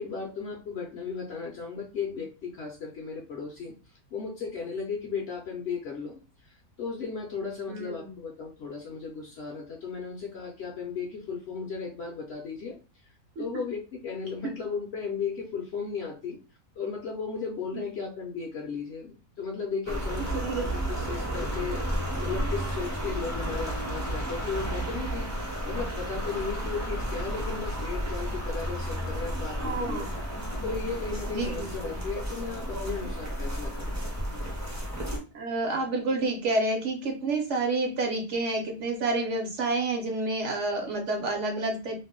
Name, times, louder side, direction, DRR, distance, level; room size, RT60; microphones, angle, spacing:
voice 1, 0.0-3.7 4.1-12.8 13.4-16.4 16.8-21.8 22.2-30.1 30.6-34.0 34.3-34.6, left 5 dB, 60° left, 0 dB, 0.7 m, -35 dB
voice 2, 7.7-8.1 13.4-13.6 14.4-14.5 20.3-20.6 29.6-30.1 31.3-32.0 35.3-41.9, right 2 dB, 60° right, 2 dB, 0.9 m, -29 dB
sound 1, 19.9-35.2, equal, 20° right, 0.5 m, -32 dB
2.6 x 2.1 x 3.6 m, 0.33 s
omnidirectional pair, 1.5 m